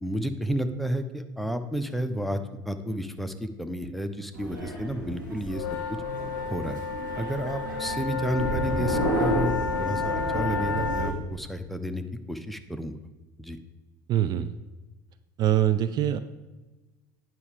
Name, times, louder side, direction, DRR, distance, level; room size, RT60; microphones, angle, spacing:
voice 1, 0.0-6.0 6.5-6.8 7.1-12.9 13.4-13.6, equal, ahead, 7 dB, 0.8 m, -31 dB
sound 1, 4.3-11.1, right 1 dB, 85° right, 2.2 m, -31 dB
sound 2, 5.5-11.1, left 6 dB, 70° left, 0.7 m, -31 dB
voice 2, 14.1-14.5 15.4-16.2, right 11 dB, 45° right, 12 dB, 0.5 m, -23 dB
9.6 x 6.0 x 5.0 m, 1.2 s
figure-of-eight pair, 70°, 10 cm